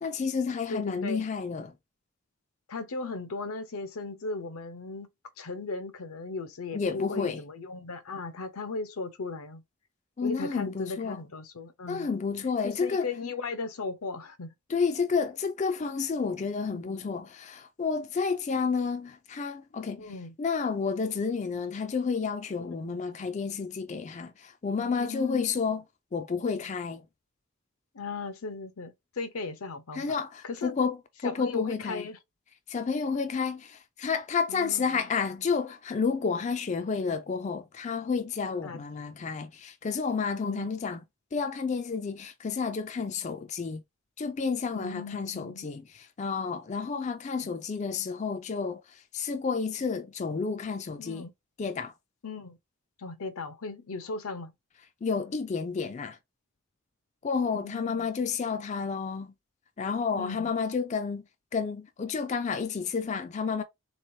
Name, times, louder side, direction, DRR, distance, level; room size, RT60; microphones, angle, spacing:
voice 1, 0.0-1.7 6.7-7.4 10.2-11.2 11.9-13.1 14.7-20.1 20.4-25.8 26.1-27.0 29.9-31.0 31.2-32.1 32.7-41.0 41.3-43.8 44.2-51.3 51.6-51.9 55.0-56.2 57.2-59.3 59.8-61.2 61.5-63.6, left 5 dB, 30° left, 0.3 m, -30 dB
voice 2, 0.7-1.2 2.7-5.1 5.4-9.6 10.2-12.1 12.6-14.5 16.7-17.0 20.0-20.3 22.7-22.9 25.0-25.5 27.9-30.2 30.4-30.8 31.2-32.2 34.5-35.0 38.6-38.8 40.4-40.7 44.7-45.7 51.0-51.3 52.2-52.6 53.0-54.5 57.5-58.1 60.2-60.5, left 3 dB, 85° left, 0.7 m, -37 dB
3.7 x 3.1 x 2.7 m
head